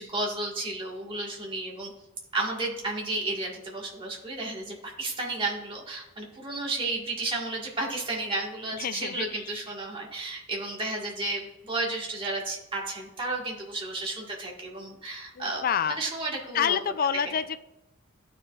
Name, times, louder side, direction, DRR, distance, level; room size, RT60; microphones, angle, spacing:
voice 1, 0.0-1.9 2.3-15.6 15.9-16.8, right 2 dB, 25° right, -2 dB, 1.6 m, -32 dB
voice 2, 8.7-9.6 15.4-16.0 16.5-17.6, left 7 dB, 45° left, 13 dB, 0.3 m, -28 dB
13.0 x 4.9 x 2.4 m, 0.98 s
head